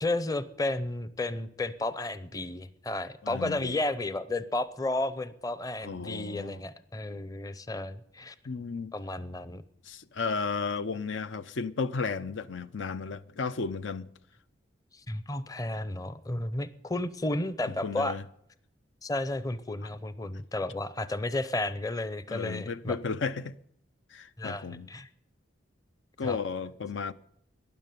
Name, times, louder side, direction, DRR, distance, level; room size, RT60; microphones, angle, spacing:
voice 1, 0.0-8.3 8.9-9.6 14.9-18.2 19.0-23.0 24.4-25.1 26.2-26.4, left 2 dB, 20° left, 0.6 m, -32 dB
voice 2, 3.2-3.8 5.8-6.6 8.5-8.9 9.9-14.1 17.8-18.2 22.3-23.6 24.1-24.9 26.2-27.1, left 4 dB, 80° left, 0.6 m, -34 dB
12.5 x 10.5 x 9.3 m
head